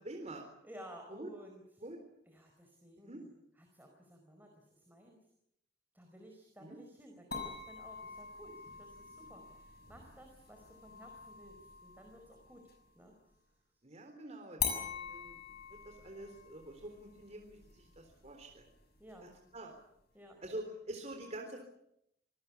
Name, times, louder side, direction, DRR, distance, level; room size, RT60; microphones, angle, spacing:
voice 1, 0.0-0.5 1.1-1.3 1.8-2.0 3.0-3.2 6.6-6.8 13.8-15.4 15.8-18.7 19.2-19.7 20.4-21.6, right 1 dB, 40° right, 3 dB, 3.8 m, -46 dB
voice 2, 0.6-1.6 2.3-5.2 5.9-11.5 11.8-12.6 12.9-13.4 19.0-19.3 20.1-20.4, right 1 dB, 10° right, 2 dB, 4.7 m, -55 dB
sound 1, 7.3-12.9 14.6-19.6, left 6 dB, 60° left, 6.7 m, -44 dB
27.5 x 19.5 x 8.4 m, 0.77 s
head